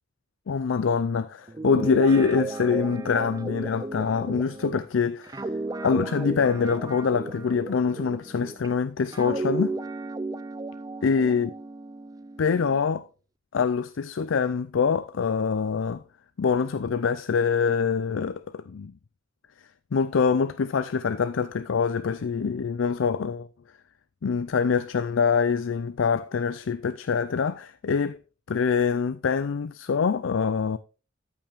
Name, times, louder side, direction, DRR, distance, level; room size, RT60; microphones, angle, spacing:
voice 1, 0.5-5.4 5.8-9.8 11.0-11.5 12.4-13.0 13.5-16.0 16.4-18.9 19.9-23.5 24.2-28.2 28.5-30.8, left 5 dB, 90° left, 0.5 m, -25 dB
Guitar, 1.5-8.7 9.1-12.8, right 3 dB, 20° right, 0.4 m, -34 dB
13.5 x 5.6 x 3.5 m
head